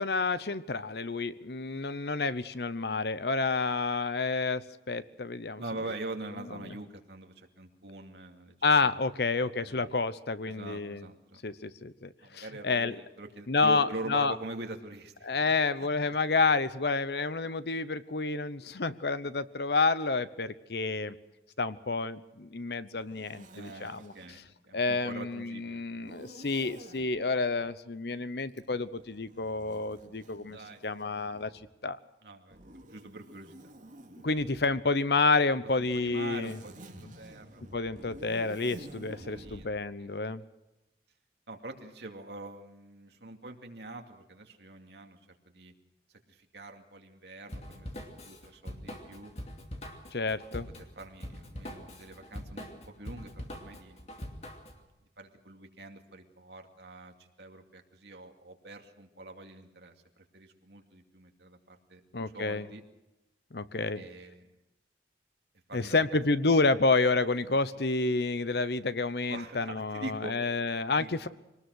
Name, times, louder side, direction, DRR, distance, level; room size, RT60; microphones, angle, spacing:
voice 1, 0.0-5.6 8.6-11.1 11.4-13.0 13.5-14.3 15.2-21.2 21.6-24.1 24.7-30.6 30.8-31.5 31.8-32.0 34.2-36.6 37.7-40.4 50.1-50.7 62.1-62.7 63.5-64.0 65.7-71.3, left 3 dB, 60° left, 14 dB, 0.9 m, -29 dB
voice 2, 5.6-8.5 8.8-9.0 9.6-9.9 10.5-11.4 12.2-15.5 15.8-15.9 23.5-25.8 30.5-30.8 32.2-33.7 35.8-37.7 37.9-38.1 39.3-39.7 40.0-40.1 41.5-45.2 45.5-45.7 46.3-47.9 48.1-49.3 50.5-50.6 51.0-54.1 55.2-62.0 62.3-62.8 63.9-64.5 65.7-66.6 67.5-67.6 69.3-70.3 70.9-71.1, right 2 dB, 65° right, 4 dB, 2.4 m, -44 dB
Zipper (clothing), 23.0-24.4 26.0-27.1 28.5-31.7 32.5-34.8 35.7-39.7, right 1 dB, 45° right, 2.7 m, -51 dB
Drum kit / Drum, 47.5-54.8, equal, 35° left, 2.6 m, -43 dB
24.0 x 19.5 x 6.4 m, 0.98 s
head